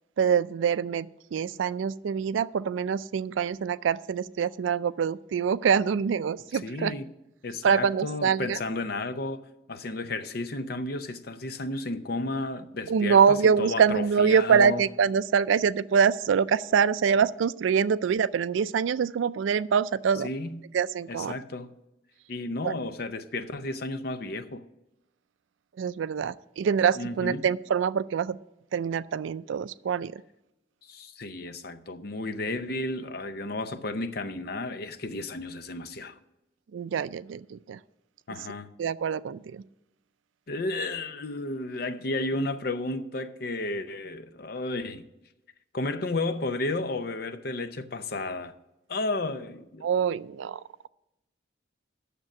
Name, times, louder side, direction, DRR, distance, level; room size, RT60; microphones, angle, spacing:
voice 1, 0.2-6.9 7.6-8.6 12.9-20.3 20.7-21.3 22.6-22.7 25.8-28.4 28.7-30.2 36.7-37.8 38.8-39.6 49.8-50.9, right 6 dB, 75° right, 0.3 m, -25 dB
voice 2, 6.6-7.1 7.4-14.8 20.2-20.6 21.1-21.7 22.3-24.6 26.9-27.4 30.8-36.2 38.3-38.7 40.5-45.0 45.7-48.5 48.9-49.9, left 2 dB, 50° left, 0.6 m, -33 dB
9.1 x 6.8 x 7.4 m
head